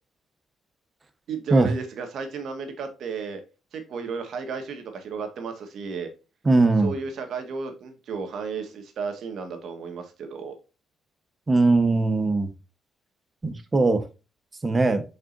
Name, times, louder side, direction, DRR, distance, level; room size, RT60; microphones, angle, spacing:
voice 1, 1.3-3.4 3.7-6.1 6.8-10.5, right 5 dB, 70° right, 6 dB, 1.8 m, -33 dB
voice 2, 6.5-6.9 11.5-12.5 13.4-14.0 14.6-15.0, right 3 dB, 25° right, 10 dB, 1.2 m, -20 dB
6.8 x 5.5 x 2.6 m, 0.30 s
cardioid pair, 90°, 0 cm